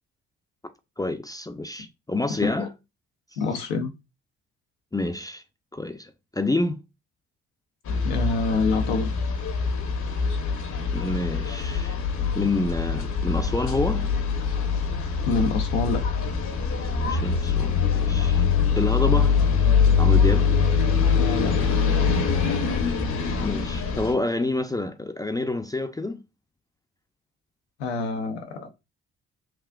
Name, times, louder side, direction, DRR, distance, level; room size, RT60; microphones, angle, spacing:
voice 1, 1.0-2.7 4.9-5.4 5.7-6.8 10.9-12.0 12.4-14.1 17.1-18.4 18.8-19.4 20.0-20.5 23.4-26.2, left 2 dB, 10° left, 0.5 m, -28 dB
voice 2, 3.4-3.9 8.0-9.1 15.2-16.2 21.2-21.6 27.8-28.7, left 3 dB, 90° left, 0.7 m, -26 dB
sound 1, 7.9-24.1, left 6 dB, 60° left, 1.0 m, -23 dB
5.9 x 2.4 x 2.3 m
hypercardioid pair, 45°, 33 cm